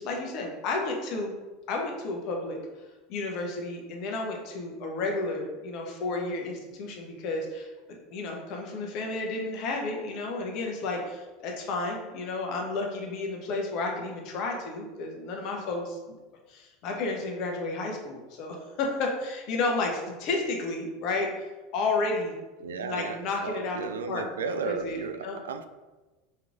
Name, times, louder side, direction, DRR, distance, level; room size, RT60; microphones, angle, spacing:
voice 1, 0.0-1.3 1.7-2.6 3.1-7.7 8.1-16.2 16.5-21.4 21.7-22.3 22.6-23.8 24.1-24.2 24.6-25.4, left 3 dB, 55° left, 1 dB, 1.0 m, -32 dB
voice 2, 22.6-25.2 25.4-25.6, right 5 dB, 80° right, 9 dB, 0.3 m, -34 dB
5.5 x 3.1 x 2.5 m, 1.2 s
hypercardioid pair, 85°, 0 cm